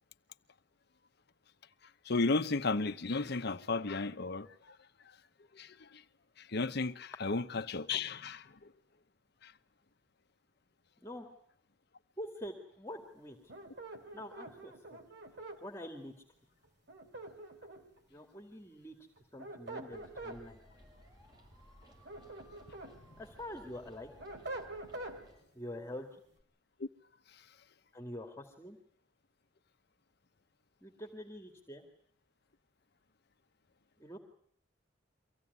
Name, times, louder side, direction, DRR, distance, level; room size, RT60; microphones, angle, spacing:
voice 1, 2.0-4.8 5.0-5.2 5.5-6.0 6.4-8.7 9.4-9.5 26.8-26.9 27.3-27.4, left 3 dB, 60° left, 0.9 m, -34 dB
voice 2, 12.2-13.4 14.1-15.0 15.6-16.1 18.1-18.9 19.3-20.6 23.2-24.1 25.5-26.2 27.9-28.8 30.8-31.8 34.0-34.2, left 1 dB, 15° left, 2.3 m, -45 dB
sound 1, 13.5-15.6 16.9-18.0 19.2-20.4 21.8-22.9 23.4-25.2, right 2 dB, 65° right, 3.2 m, -45 dB
sound 2, 19.9-25.4, equal, 25° right, 6.8 m, -59 dB
24.5 x 16.5 x 9.5 m
head